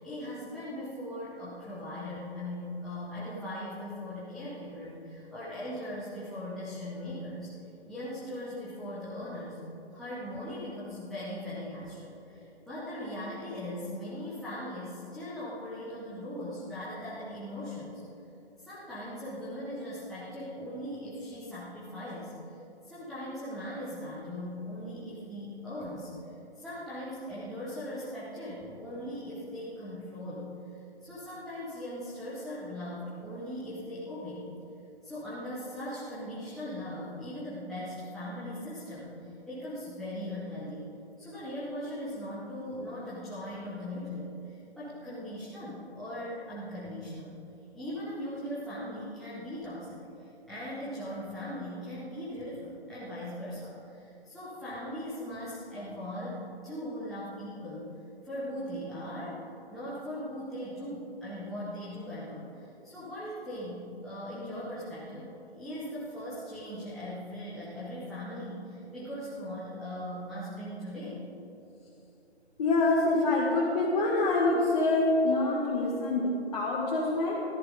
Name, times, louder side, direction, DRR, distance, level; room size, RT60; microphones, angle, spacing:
voice 1, 0.0-7.5 7.9-9.6 9.9-18.0 18.6-22.5 22.8-26.1 26.6-34.5 35.0-40.8 41.2-47.4 47.7-57.9 58.2-59.4 59.7-71.3, equal, ahead, -13 dB, 0.7 m, -39 dB
voice 2, 72.6-77.4, left 2 dB, 35° left, -4 dB, 1.9 m, -26 dB
14.5 x 13.0 x 5.2 m, 2.8 s
figure-of-eight pair, 155°, 33 cm